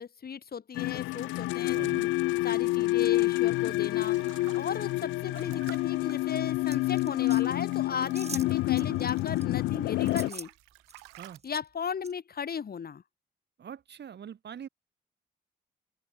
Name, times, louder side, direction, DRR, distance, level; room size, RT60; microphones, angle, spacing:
voice 1, 0.0-2.1 2.4-4.2 4.5-10.5 11.4-13.0, left 7 dB, 50° left, 1.7 m, -36 dB
sound 1, 0.8-10.3, left 18 dB, 80° left, 0.6 m, -28 dB
voice 2, 1.7-2.1 8.8-9.0 11.2-11.4 13.6-14.7, right 8 dB, 60° right, 2.4 m, -43 dB
sound 2, 3.4-9.5 9.8-11.4, right 30 dB, 85° right, 2.8 m, -53 dB
sound 3, 6.7-7.4 8.2-8.5 8.8-9.5 10.1-10.5 10.9-11.6 12.0-12.1, right 4 dB, 35° right, 1.6 m, -42 dB
open air
hypercardioid pair, 40°, 20 cm